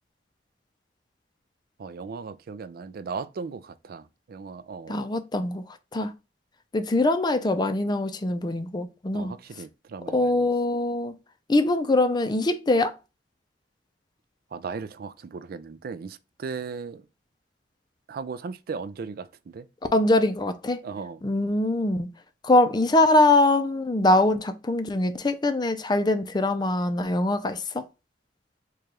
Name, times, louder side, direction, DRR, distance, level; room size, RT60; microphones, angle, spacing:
voice 1, 1.8-5.0 9.1-10.5 14.5-17.1 18.1-19.7 20.8-21.2, right 5 dB, 55° right, 0.4 m, -37 dB
voice 2, 4.9-5.6 5.9-6.1 6.7-9.3 10.1-11.1 11.5-12.9 19.9-20.8 21.2-22.1 22.4-27.8, left 2 dB, 25° left, 0.4 m, -23 dB
4.8 x 2.3 x 2.9 m
head